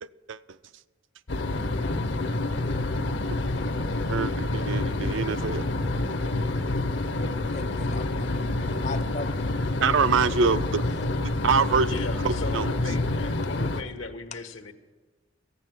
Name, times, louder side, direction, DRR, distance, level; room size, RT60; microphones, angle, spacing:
voice 1, 0.0-0.4 4.1-5.6 9.8-10.8 11.2-12.7, right 5 dB, 70° right, 0.4 m, -25 dB
sound 1, 1.3-13.8, left 2 dB, 65° left, 0.8 m, -28 dB
voice 2, 7.5-9.4 12.8-13.0, left 3 dB, 35° left, 0.5 m, -37 dB
voice 3, 11.9-14.7, left 3 dB, 80° left, 1.1 m, -38 dB
14.5 x 8.4 x 7.4 m
head